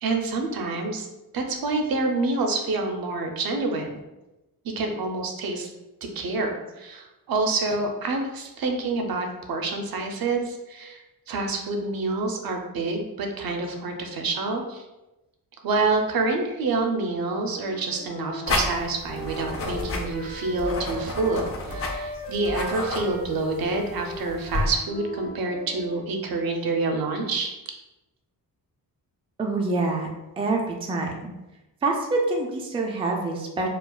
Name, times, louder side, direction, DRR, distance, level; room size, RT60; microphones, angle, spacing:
voice 1, 0.0-1.1 1.3-4.0 4.6-5.7 6.0-14.8 15.6-27.5, right 3 dB, 70° right, 3 dB, 0.6 m, -27 dB
Wind instrument woodwind instrument, 17.5-21.4 21.7-26.0, equal, ahead, 0.9 m, -38 dB
sound 1, 18.5-24.7, left 2 dB, 40° left, 0.6 m, -31 dB
voice 2, 29.4-30.1 30.4-31.3 31.8-33.7, right 3 dB, 15° right, 0 dB, 0.3 m, -26 dB
4.8 x 2.3 x 2.3 m, 1.0 s
wide cardioid pair, 155°, 37 cm